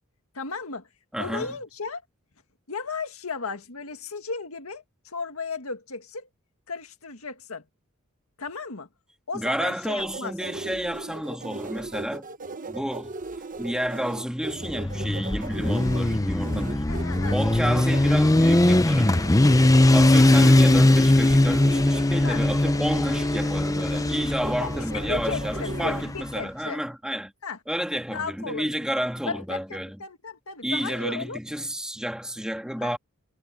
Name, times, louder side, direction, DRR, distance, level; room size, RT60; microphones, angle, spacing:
voice 1, 0.3-0.9 1.2-2.0 2.7-6.3 6.7-7.6 8.4-8.9 9.3-10.3 16.9-17.4 22.2-22.4 24.6-26.8 27.4-27.6 28.1-28.9 29.3-31.4 32.8-33.0, left 4 dB, 80° left, 1.9 m, -35 dB
voice 2, 1.1-1.6 9.3-12.3 12.7-13.2 13.6-19.2 19.9-27.3 27.7-29.9 30.6-33.0, equal, 5° right, 1.7 m, -30 dB
sound 1, 10.0-26.0, right 3 dB, 40° right, 1.3 m, -38 dB
Motorcycle, 14.6-26.3, left 1 dB, 15° left, 0.6 m, -20 dB
head